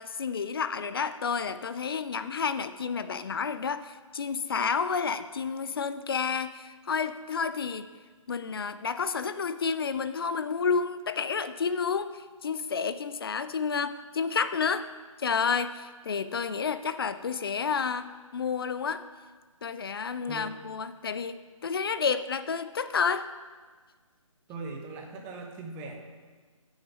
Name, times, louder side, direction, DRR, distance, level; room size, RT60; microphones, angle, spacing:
voice 1, 0.0-7.9 8.3-14.9 15.2-19.0 19.6-21.4 21.6-23.3, left 5 dB, 45° left, 12 dB, 0.4 m, -30 dB
voice 2, 24.5-26.0, right 3 dB, 10° right, 2 dB, 0.8 m, -40 dB
9.4 x 6.4 x 4.8 m, 1.4 s
figure-of-eight pair, 145°, 17 cm